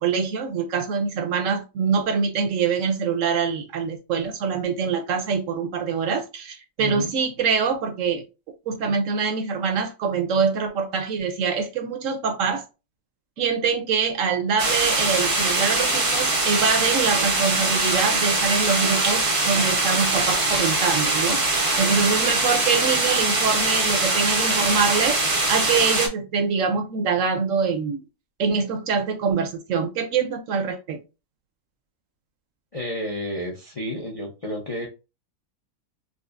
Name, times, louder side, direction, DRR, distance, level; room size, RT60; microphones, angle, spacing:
voice 1, 0.0-8.2 8.7-12.6 13.4-21.4 21.8-25.2 25.5-28.0 28.4-31.0, right 5 dB, 70° right, 0.9 m, -24 dB
sound 1, 14.6-26.1, right 2 dB, 40° right, 0.4 m, -22 dB
voice 2, 32.7-34.9, left 1 dB, 45° left, 0.4 m, -31 dB
5.0 x 2.0 x 2.4 m
omnidirectional pair, 1.5 m